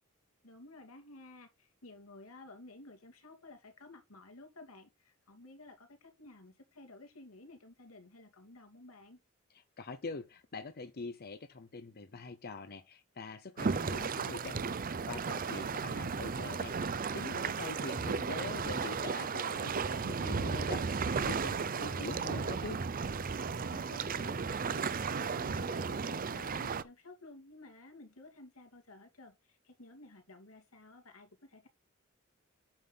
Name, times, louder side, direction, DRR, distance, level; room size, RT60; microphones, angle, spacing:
voice 1, 0.4-9.2 17.1-18.5 23.5-31.7, left 2 dB, 85° left, 2.8 m, -54 dB
voice 2, 9.8-14.8 15.1-16.7 17.1-22.8, left 3 dB, 50° left, 0.7 m, -44 dB
sound 1, 13.6-26.8, right 5 dB, 40° right, 0.6 m, -35 dB
8.8 x 5.7 x 4.0 m
head